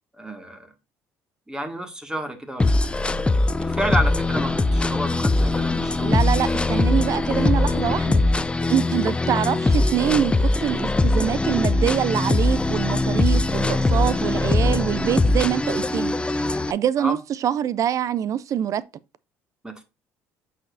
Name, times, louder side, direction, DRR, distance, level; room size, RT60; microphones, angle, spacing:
voice 1, 0.2-0.7 1.5-2.9 3.6-6.1 17.0-17.2 19.6-19.8, right 1 dB, 10° right, 1.9 m, -30 dB
sound 1, 2.6-16.7, left 2 dB, 15° left, 0.5 m, -21 dB
voice 2, 6.0-8.2 8.7-18.9, right 10 dB, 55° right, 0.4 m, -25 dB
8.4 x 5.0 x 2.6 m
supercardioid pair, 70°, 7 cm